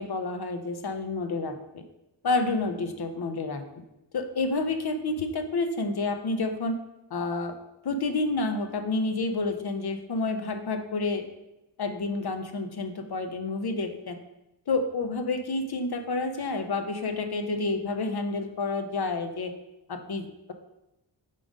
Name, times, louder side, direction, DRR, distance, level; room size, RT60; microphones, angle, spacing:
voice 1, 0.0-1.8 2.2-3.6 4.1-6.8 7.1-7.5 7.8-11.2 11.8-14.2 14.7-19.5 19.9-20.5, left 3 dB, 55° left, 7 dB, 0.7 m, -29 dB
5.0 x 3.8 x 5.0 m, 0.92 s
wide cardioid pair, 90°, 45 cm